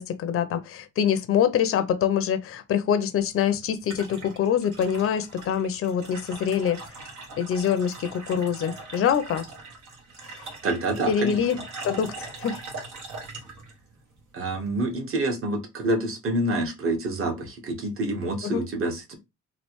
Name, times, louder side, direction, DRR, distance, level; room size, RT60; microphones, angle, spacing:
voice 1, 0.0-6.8 7.4-9.4 11.1-11.6 11.8-12.6 18.4-18.6, left 8 dB, 50° left, 0.6 m, -25 dB
sound 1, 3.2-14.9, right 3 dB, 75° right, 1.3 m, -41 dB
voice 2, 10.6-11.4 14.3-19.2, right 2 dB, 45° right, 1.3 m, -27 dB
3.2 x 2.5 x 3.0 m
cardioid pair, 90°, 30 cm